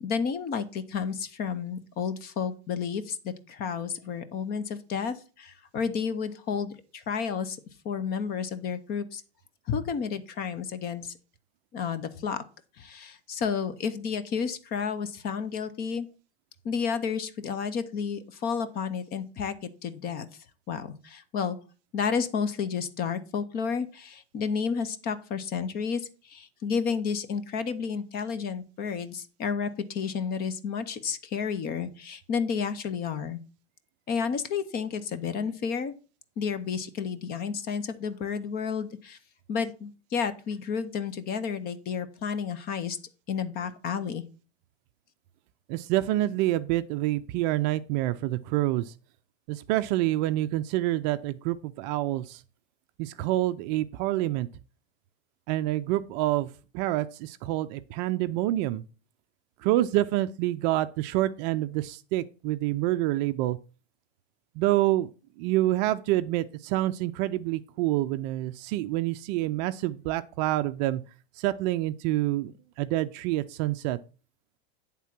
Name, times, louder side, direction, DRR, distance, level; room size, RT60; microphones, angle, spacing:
voice 1, 0.0-7.6 7.8-9.2 9.7-11.1 11.7-12.4 12.8-16.1 16.6-20.3 20.7-21.6 21.9-33.4 34.1-35.9 36.4-39.2 39.5-43.0 43.3-44.2, left 6 dB, 30° left, 0.7 m, -31 dB
voice 2, 45.7-48.8 49.5-52.4 53.0-54.5 55.5-56.5 56.7-58.8 59.6-63.6 64.6-65.1 65.4-71.0 71.4-72.5 72.8-74.0, right 15 dB, 45° right, 0.5 m, -27 dB
9.7 x 3.7 x 5.8 m
supercardioid pair, 155°, 32 cm